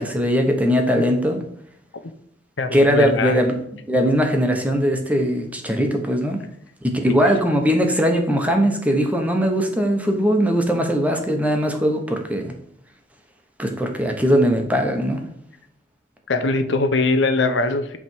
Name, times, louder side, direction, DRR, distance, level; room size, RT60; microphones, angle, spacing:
voice 1, 0.0-1.4 2.7-3.6 3.9-6.4 6.8-12.5 13.6-15.2, equal, 10° right, 3 dB, 1.1 m, -20 dB
voice 2, 2.6-3.4 7.1-7.2 16.3-18.0, left 3 dB, 75° left, 9 dB, 0.7 m, -21 dB
8.6 x 3.5 x 4.6 m, 0.72 s
head